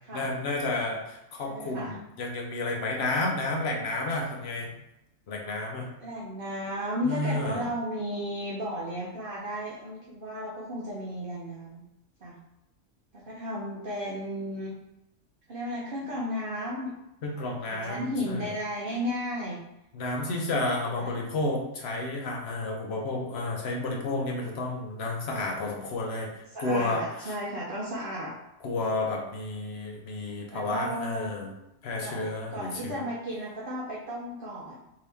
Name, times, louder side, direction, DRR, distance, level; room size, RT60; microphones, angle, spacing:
voice 1, 0.1-4.8 5.3-5.9 7.0-7.6 17.2-18.5 19.9-27.3 28.6-31.5 31.8-33.0, left 2 dB, 60° left, 0 dB, 0.9 m, -31 dB
voice 2, 1.5-1.9 6.0-11.8 12.2-12.4 13.1-14.7 15.5-16.9 17.2-19.6 20.2-20.4 20.9-21.1 26.5-28.3 30.5-31.3 31.9-34.9, equal, 50° right, -5 dB, 0.8 m, -34 dB
3.7 x 2.9 x 3.3 m, 0.88 s
omnidirectional pair, 1.3 m